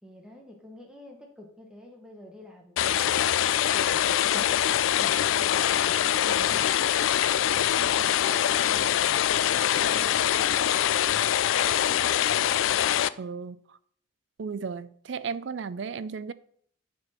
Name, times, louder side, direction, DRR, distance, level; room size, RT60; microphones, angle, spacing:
voice 1, 0.0-3.2 3.7-6.7, equal, 5° right, 1.1 m, -48 dB
sound 1, 2.8-13.1, left 11 dB, 75° left, 0.3 m, -24 dB
voice 2, 13.2-13.8 14.4-16.3, right 5 dB, 60° right, 0.4 m, -35 dB
9.4 x 4.3 x 5.6 m
head